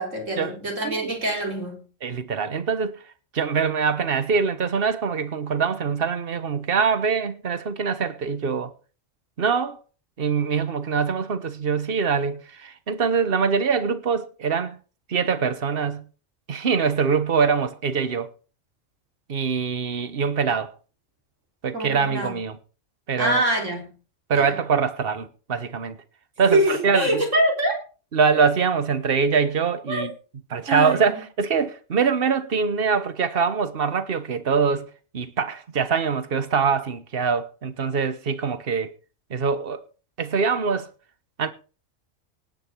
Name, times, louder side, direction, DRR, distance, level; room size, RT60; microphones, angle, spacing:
voice 1, 0.0-1.9 21.7-22.4 23.2-23.8 24.3-24.5 26.5-27.8 29.9-30.1 30.7-31.2, right 1 dB, 70° right, 4.2 m, -24 dB
voice 2, 2.0-3.0 3.3-8.7 9.4-9.8 10.2-14.8 15.1-16.0 16.5-18.3 19.3-20.7 21.6-22.6 23.1-23.4 24.3-26.0 26.4-27.2 28.1-30.1 30.5-38.9 39.3-39.8 40.2-40.9 41.4-41.5, right 5 dB, 50° right, 1.3 m, -23 dB
18.0 x 9.1 x 4.5 m
omnidirectional pair, 1.3 m